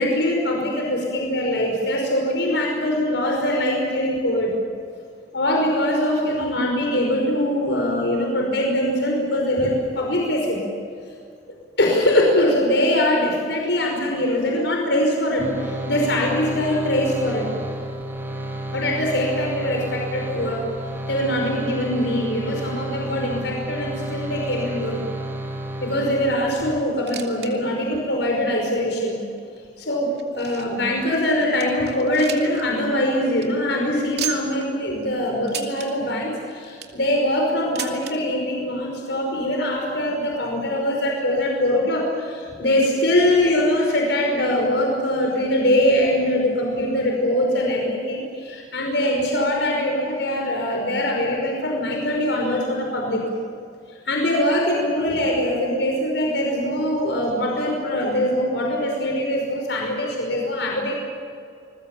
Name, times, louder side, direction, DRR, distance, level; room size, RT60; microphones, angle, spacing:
voice 1, 0.0-4.5 5.3-10.6 11.8-17.5 18.7-20.6 21.1-25.0 25.8-29.2 29.8-53.2 53.9-60.9, left 1 dB, 90° left, 0 dB, 5.4 m, -22 dB
sound 1, 15.4-26.7, right 1 dB, 15° right, 5.0 m, -31 dB
sound 2, 26.9-27.5 27.8-27.9 28.6-28.7 29.4-30.9 31.3-31.4 31.6-32.6 32.9-33.0 33.3-33.5 34.2-34.7 35.5-35.9 36.5-37.0 37.8-38.1 39.1-39.2 39.4-39.5 40.3-40.4, right 9 dB, 65° right, 2.6 m, -33 dB
28.5 x 21.5 x 7.5 m, 2.3 s
head